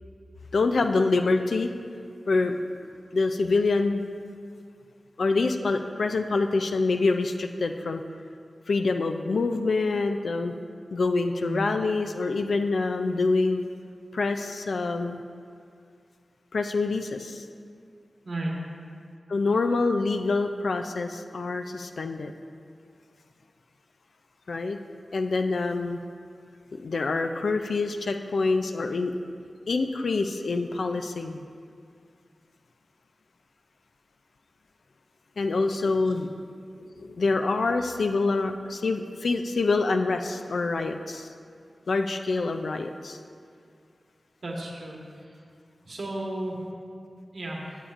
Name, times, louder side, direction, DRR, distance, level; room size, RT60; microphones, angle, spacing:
voice 1, 0.5-1.7 2.3-2.6 3.1-4.0 5.2-8.0 8.7-10.5 10.9-13.7 14.1-15.2 16.5-17.4 19.3-22.3 24.5-24.8 25.1-26.0 26.7-29.1 29.7-31.4 35.4-36.3 36.8-41.3 41.9-43.2, left 3 dB, 80° left, 6 dB, 0.3 m, -26 dB
voice 2, 44.4-45.0 45.9-46.6 47.3-47.6, right 1 dB, 70° right, -2 dB, 1.3 m, -33 dB
13.5 x 7.0 x 2.4 m, 2.3 s
cardioid pair, 40°, 0 cm